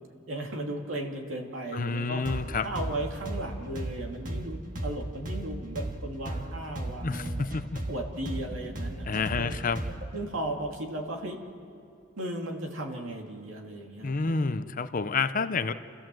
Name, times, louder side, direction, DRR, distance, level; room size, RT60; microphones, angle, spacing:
voice 1, 0.3-2.2 2.6-7.5 7.9-9.6 10.1-11.4 12.2-14.3, right 1 dB, 70° right, 2 dB, 2.5 m, -36 dB
voice 2, 1.7-2.7 7.0-7.8 9.1-9.8 14.0-15.7, left 4 dB, 40° left, 11 dB, 0.7 m, -29 dB
sound 1, 2.3-10.2, right 1 dB, 40° right, 1.9 m, -35 dB
29.5 x 14.5 x 7.6 m, 2.6 s
head